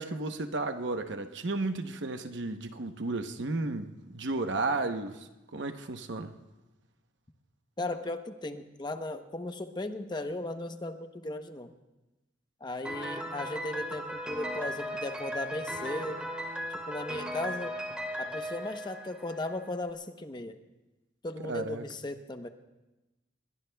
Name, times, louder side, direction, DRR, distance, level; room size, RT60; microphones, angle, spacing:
voice 1, 0.0-6.3 21.4-21.8, right 2 dB, 70° right, 0.9 m, -33 dB
voice 2, 7.8-11.7 12.6-16.3 16.7-17.7 18.2-20.6 21.2-22.5, left 2 dB, 25° left, 0.9 m, -37 dB
Piano, 12.8-19.7, equal, 5° right, 2.7 m, -37 dB
28.0 x 22.0 x 2.3 m
head